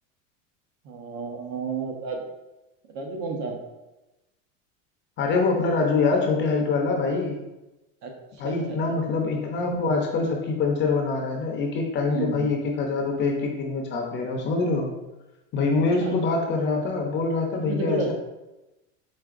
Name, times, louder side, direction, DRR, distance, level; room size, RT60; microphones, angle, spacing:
voice 1, 0.8-2.3 2.9-3.6 8.0-8.1 8.4-9.2 12.1-12.5 16.0-16.2 17.6-18.1, right 4 dB, 45° right, 2 dB, 0.8 m, -32 dB
voice 2, 5.2-7.4 8.4-14.9 15.5-18.1, left 3 dB, 30° left, 1 dB, 0.6 m, -24 dB
4.9 x 3.8 x 2.4 m, 1.0 s
supercardioid pair, 140°, 37 cm